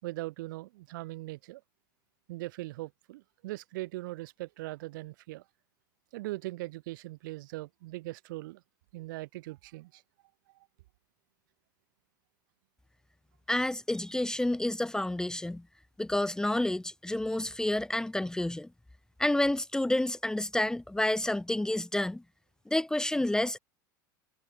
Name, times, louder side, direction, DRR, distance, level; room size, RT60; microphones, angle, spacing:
voice 1, 0.0-1.6 2.3-5.4 6.1-8.6 8.9-10.0, right 19 dB, 75° right, 5.8 m, -40 dB
voice 2, 13.5-15.6 16.0-18.7 19.2-22.2 22.7-23.6, left 1 dB, 5° left, 1.2 m, -29 dB
hypercardioid pair, 95°, 11 cm